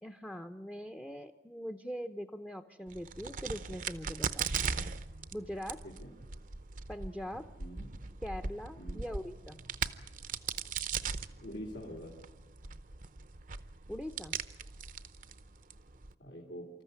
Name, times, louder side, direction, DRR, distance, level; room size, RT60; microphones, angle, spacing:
voice 1, 0.0-4.5 5.3-5.8 6.9-7.5 8.2-9.6 13.9-14.4, equal, 5° left, 8 dB, 0.6 m, -42 dB
Crack, 2.9-16.1, right 5 dB, 50° right, 0.7 m, -39 dB
voice 2, 8.8-9.1 11.4-12.2 16.2-16.7, equal, 85° left, -3 dB, 3.1 m, -45 dB
25.5 x 14.0 x 9.6 m, 1.2 s
head